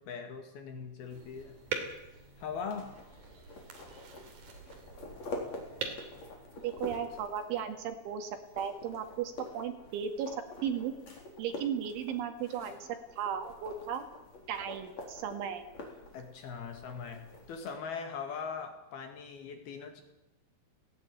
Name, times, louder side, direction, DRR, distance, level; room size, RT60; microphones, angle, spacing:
voice 1, 0.0-1.6 2.4-3.0 16.1-20.0, left 6 dB, 60° left, 6 dB, 3.7 m, -40 dB
sound 1, 1.0-17.7, left 2 dB, 35° left, 4.9 m, -47 dB
sound 2, 1.1-7.0, right 5 dB, 45° right, 3.8 m, -44 dB
voice 2, 6.6-10.4 10.6-10.9 11.4-14.1 14.5-15.7, right 8 dB, 80° right, 7 dB, 4.5 m, -36 dB
18.0 x 17.0 x 9.3 m, 0.92 s
omnidirectional pair, 5.4 m